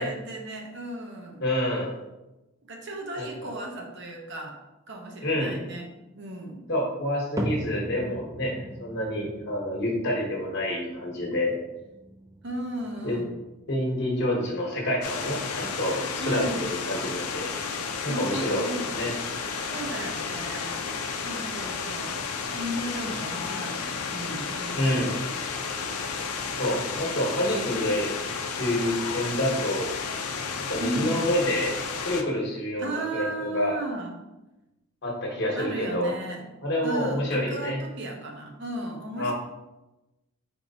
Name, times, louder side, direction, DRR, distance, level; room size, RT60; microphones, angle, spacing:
voice 1, 0.0-1.5 2.7-4.6 4.9-5.9 6.1-6.7 12.4-13.3 16.2-16.7 18.1-19.0 19.6-20.9 21.2-22.2 22.5-25.1 30.8-31.2 32.8-34.2 35.6-36.4 36.8-39.3, right 1 dB, 55° right, 1 dB, 0.7 m, -35 dB
voice 2, 1.4-2.0 3.2-3.5 5.2-5.6 6.7-11.6 13.0-13.2 13.7-17.5 18.0-19.1 24.7-25.1 26.5-29.9 30.7-31.7 32.0-33.8 35.0-36.1 36.6-37.8 39.2-39.3, left 1 dB, 50° left, -1 dB, 1.1 m, -28 dB
sound 1, 7.4-23.7 24.0-24.5 25.1-25.2 26.0-26.1, right 1 dB, 15° right, 0.3 m, -42 dB
sound 2, 15.0-32.2, left 5 dB, 85° left, 0.5 m, -32 dB
4.4 x 4.3 x 2.7 m, 1.0 s
head